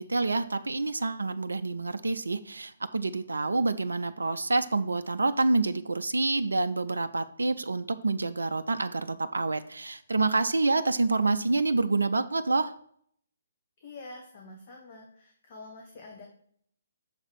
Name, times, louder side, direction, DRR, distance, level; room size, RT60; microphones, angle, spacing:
voice 1, 0.0-12.7, right 3 dB, 70° right, 10 dB, 0.4 m, -27 dB
voice 2, 13.8-16.2, left 2 dB, 40° left, 1 dB, 1.2 m, -46 dB
6.7 x 4.0 x 6.1 m, 0.64 s
figure-of-eight pair, 130°, 0 cm